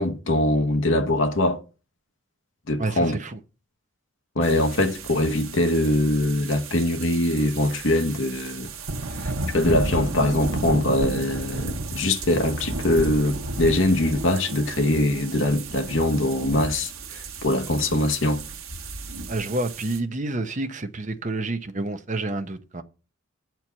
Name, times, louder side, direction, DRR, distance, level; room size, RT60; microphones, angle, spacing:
voice 1, 0.0-1.6 2.7-3.2 4.4-8.7 9.2-18.4, left 1 dB, 65° left, 1.1 m, -23 dB
voice 2, 2.8-3.4 19.3-22.8, right 2 dB, 35° right, 0.8 m, -29 dB
sound 1, 4.4-20.0, right 2 dB, 80° right, 1.2 m, -33 dB
8.2 x 4.6 x 7.3 m
head